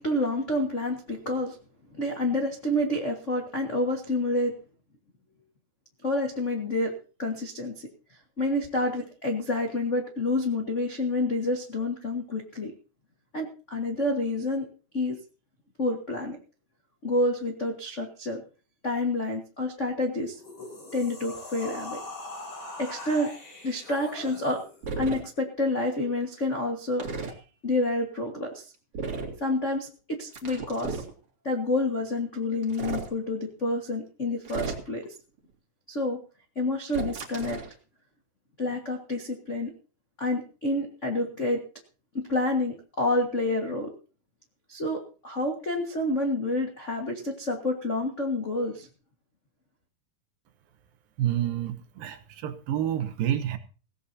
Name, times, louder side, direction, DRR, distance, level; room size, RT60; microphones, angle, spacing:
voice 1, 0.0-1.6 1.9-4.5 6.0-6.9 7.2-7.9 8.4-12.7 13.3-14.7 14.9-15.2 15.8-16.4 17.0-18.4 18.8-20.4 20.9-22.0 22.8-23.3 23.6-24.6 25.0-27.4 27.6-28.7 29.4-31.0 31.4-35.0 35.9-36.2 36.5-37.6 38.6-39.7 40.2-41.6 42.1-43.9 44.7-48.9, left 1 dB, 80° left, 0 dB, 0.6 m, -28 dB
sound 1, 20.3-24.9, left 2 dB, 40° left, 6.0 m, -41 dB
sound 2, 24.8-25.2 27.0-27.3 28.9-29.4 30.3-31.1 32.6-33.1 34.5-35.0 36.9-37.7, right 4 dB, 40° right, 2.7 m, -34 dB
voice 2, 51.2-53.6, right 11 dB, 70° right, 7 dB, 2.7 m, -29 dB
18.0 x 17.0 x 2.8 m, 0.37 s
omnidirectional pair, 4.4 m